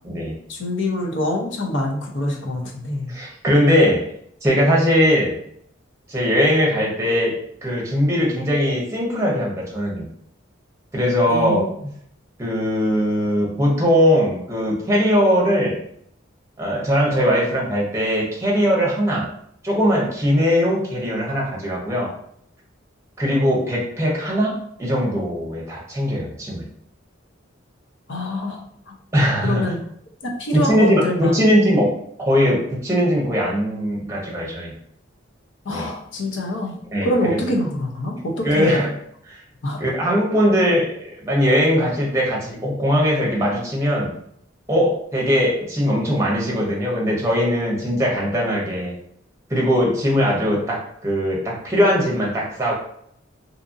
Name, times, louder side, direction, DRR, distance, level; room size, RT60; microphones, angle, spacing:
voice 1, 0.5-3.1 11.3-11.9 28.1-28.6 28.9-29.0 29.4-29.8 30.2-31.4 35.6-38.9 39.6-39.8 50.1-50.3, left 1 dB, 70° left, 0 dB, 0.6 m, -25 dB
voice 2, 3.1-4.1 4.4-5.3 6.1-7.3 7.6-10.1 10.9-11.6 12.4-15.8 16.6-19.3 19.6-22.1 23.2-24.5 24.8-26.6 29.1-29.6 30.5-31.9 32.2-34.7 35.7-35.9 36.9-37.4 38.4-38.9 39.3-39.4 39.8-40.9 41.2-44.1 44.7-48.9 49.5-50.8 51.0-52.7, equal, 15° right, -4 dB, 0.7 m, -20 dB
2.7 x 2.5 x 2.5 m, 0.69 s
head